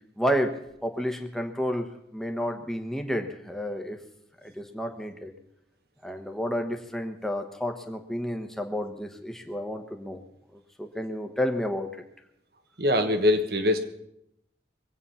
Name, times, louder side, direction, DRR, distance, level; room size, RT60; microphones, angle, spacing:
voice 1, 0.2-0.5 0.8-1.9 2.1-4.0 4.4-5.3 6.0-10.2 10.8-11.9, equal, ahead, 4 dB, 1.2 m, -30 dB
voice 2, 12.8-13.8, left 1 dB, 60° right, 7 dB, 1.3 m, -23 dB
22.5 x 8.9 x 5.7 m, 0.80 s
head